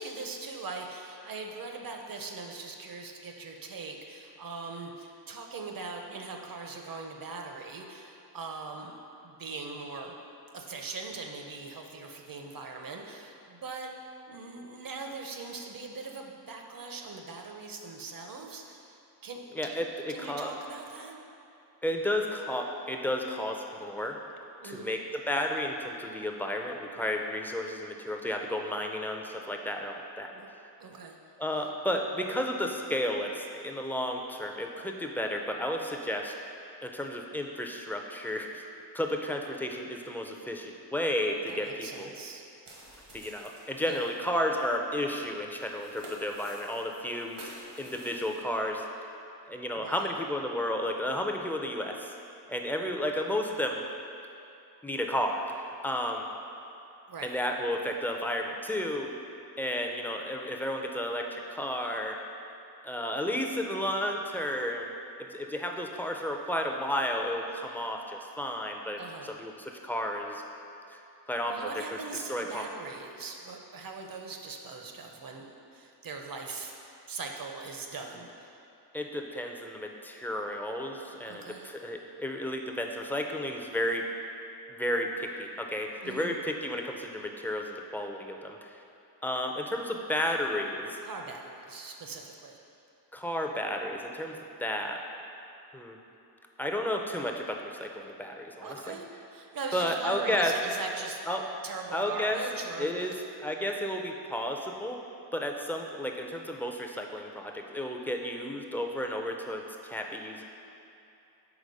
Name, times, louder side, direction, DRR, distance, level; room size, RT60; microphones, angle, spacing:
voice 1, 0.0-10.1 10.5-13.9 14.3-18.9 19.2-19.8 20.1-21.2 24.6-24.9 30.3-30.5 30.8-31.2 41.5-42.4 43.8-44.1 49.8-50.1 57.1-57.4 69.0-69.3 71.5-76.7 77.1-78.5 81.3-81.7 86.0-86.3 91.0-92.6 98.6-101.2 101.6-103.1, right 3 dB, 55° right, 2 dB, 0.7 m, -41 dB
voice 2, 19.5-20.5 21.8-24.2 24.6-30.3 31.4-36.3 36.8-38.6 38.9-42.1 43.1-47.5 47.8-49.1 49.5-52.1 52.5-53.8 54.8-56.3 57.2-59.1 59.6-62.2 62.8-70.4 70.9-71.0 71.3-71.7 72.3-72.7 78.9-84.1 84.7-88.8 89.2-91.0 93.1-95.0 95.7-96.0 96.6-99.0 99.7-100.6 101.3-101.5 101.9-102.4 102.8-103.1 103.4-105.0 105.3-110.4, left 1 dB, 5° left, 2 dB, 0.4 m, -32 dB
sound 1, 42.6-48.4, right 1 dB, 80° right, 1.4 m, -50 dB
4.9 x 4.0 x 5.2 m, 2.7 s
wide cardioid pair, 85°, 42 cm